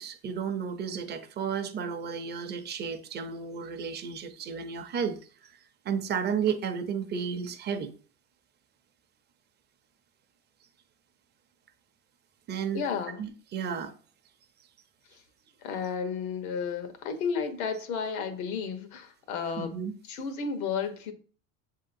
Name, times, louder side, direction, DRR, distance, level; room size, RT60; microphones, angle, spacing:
voice 1, 0.0-5.5 5.8-7.9 12.5-12.8 13.2-13.9 19.6-19.9, right 7 dB, 25° right, 0.6 m, -33 dB
voice 2, 12.7-13.2 15.6-19.8 20.1-21.1, left 6 dB, 80° left, 1.1 m, -32 dB
7.0 x 2.8 x 2.6 m
supercardioid pair, 105°, 42 cm